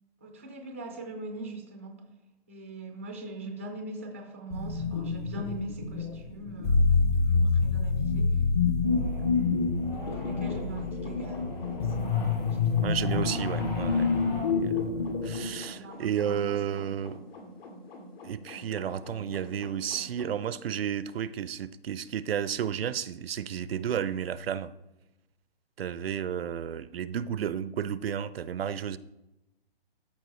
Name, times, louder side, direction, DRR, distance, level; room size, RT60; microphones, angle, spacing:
voice 1, 0.2-2.0 2.5-8.4 9.0-9.5 9.9-12.9 14.5-14.8 15.7-16.8, right 2 dB, 15° right, 0.3 m, -42 dB
sound 1, 4.5-15.6, left 4 dB, 25° left, 0.6 m, -27 dB
sound 2, 8.8-14.5, left 2 dB, 50° left, 2.4 m, -41 dB
sound 3, 10.4-20.4, left 1 dB, 70° left, 2.3 m, -47 dB
voice 2, 12.7-14.1 14.5-17.2 18.2-24.7 25.8-29.0, right 9 dB, 70° right, 0.5 m, -32 dB
13.0 x 4.4 x 3.1 m
hypercardioid pair, 160°, 31 cm